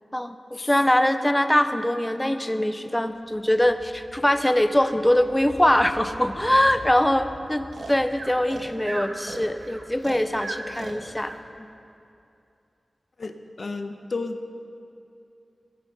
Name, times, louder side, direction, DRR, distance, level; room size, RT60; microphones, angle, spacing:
voice 1, 0.1-11.3, left 1 dB, 10° left, 9 dB, 0.6 m, -22 dB
sound 1, 3.0-11.5, left 1 dB, 80° left, 4.2 m, -47 dB
Breathing, 7.7-11.4, right 3 dB, 75° right, 1.3 m, -36 dB
voice 2, 13.2-14.4, left 3 dB, 60° left, 7 dB, 0.9 m, -32 dB
15.5 x 10.5 x 5.5 m, 2.6 s
wide cardioid pair, 75°, 0 cm